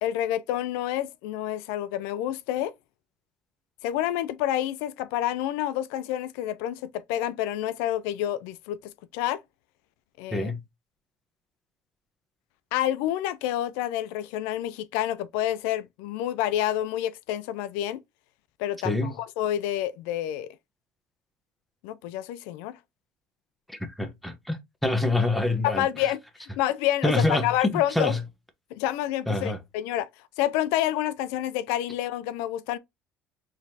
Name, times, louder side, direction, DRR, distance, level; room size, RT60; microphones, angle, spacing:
voice 1, 0.0-2.7 3.8-8.8 9.1-9.4 10.2-10.5 12.7-18.0 18.6-20.5 21.8-22.7 25.6-28.1 28.7-30.1 30.4-32.8, left 12 dB, 90° left, 0.4 m, -28 dB
voice 2, 23.7-25.9 27.0-27.4 27.7-28.2 29.3-29.6, left 2 dB, ahead, 0.8 m, -26 dB
4.0 x 3.1 x 2.7 m
cardioid pair, 120°, 4 cm